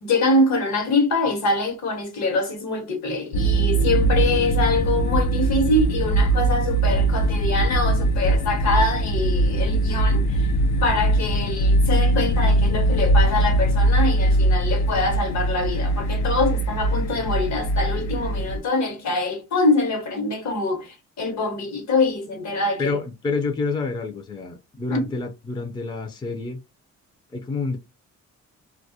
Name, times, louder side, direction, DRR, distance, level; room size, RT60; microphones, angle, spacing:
voice 1, 0.0-10.5 10.8-23.0 24.9-25.0, left 2 dB, 65° left, 1.0 m, -24 dB
sound 1, 3.3-18.6, right 2 dB, 80° left, 0.5 m, -21 dB
voice 2, 22.8-26.6 27.3-27.8, left 3 dB, 15° left, 0.4 m, -28 dB
2.3 x 2.1 x 2.7 m
cardioid pair, 90°, 30 cm